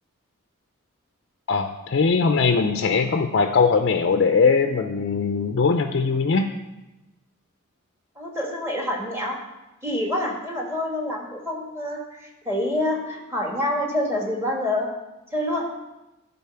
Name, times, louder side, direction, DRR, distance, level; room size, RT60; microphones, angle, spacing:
voice 1, 1.5-6.5, left 4 dB, 50° left, 6 dB, 0.4 m, -20 dB
voice 2, 8.2-9.4 9.8-14.9 15.3-15.6, left 1 dB, 10° right, -1 dB, 1.4 m, -27 dB
11.5 x 4.1 x 5.6 m, 1.0 s
head